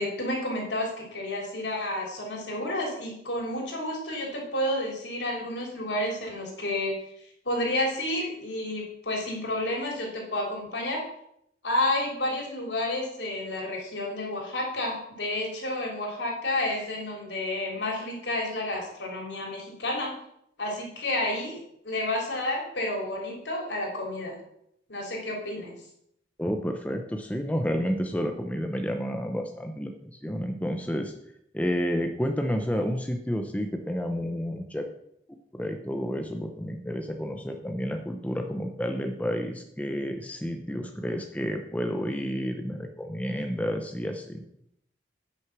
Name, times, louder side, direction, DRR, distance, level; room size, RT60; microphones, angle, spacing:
voice 1, 0.0-6.9 7.4-11.0 11.6-20.1 20.6-24.3 24.9-25.7, left 1 dB, 70° left, -1 dB, 3.4 m, -30 dB
voice 2, 26.4-31.1 31.5-34.9 35.5-44.4, equal, 10° left, 4 dB, 0.7 m, -30 dB
9.5 x 6.2 x 6.0 m, 0.74 s
head